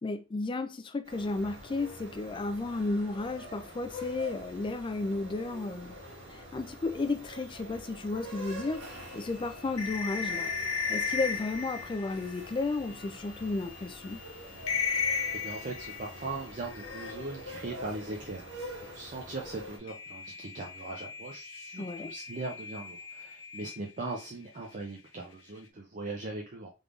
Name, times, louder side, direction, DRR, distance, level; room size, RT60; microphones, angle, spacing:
voice 1, 0.0-6.0 6.3-10.5 10.9-14.2 21.8-22.1, left 3 dB, 25° left, 0.3 m, -33 dB
sound 1, 1.0-19.8, equal, 60° right, 1.6 m, -45 dB
sound 2, 8.8-13.1 13.7-13.8 14.1-14.3 14.6-17.5 19.9-24.3, left 6 dB, 80° left, 0.6 m, -36 dB
voice 2, 14.9-26.7, right 2 dB, 35° right, 0.5 m, -40 dB
3.5 x 3.3 x 2.4 m
head